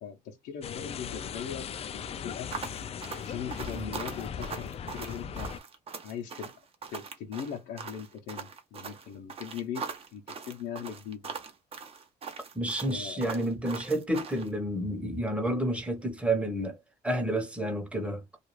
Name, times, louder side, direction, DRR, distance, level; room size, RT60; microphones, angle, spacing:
voice 1, 0.0-2.7 3.2-5.5 6.0-6.5 6.9-11.3 12.9-13.2, left 8 dB, 80° left, 0.7 m, -40 dB
sound 1, 0.6-5.6, left 7 dB, 35° left, 0.4 m, -38 dB
sound 2, 2.5-14.5, right 5 dB, 35° right, 0.7 m, -41 dB
voice 2, 12.5-16.8 17.0-18.2, right 1 dB, 5° right, 0.9 m, -30 dB
2.4 x 2.3 x 3.1 m
cardioid pair, 110°, 17 cm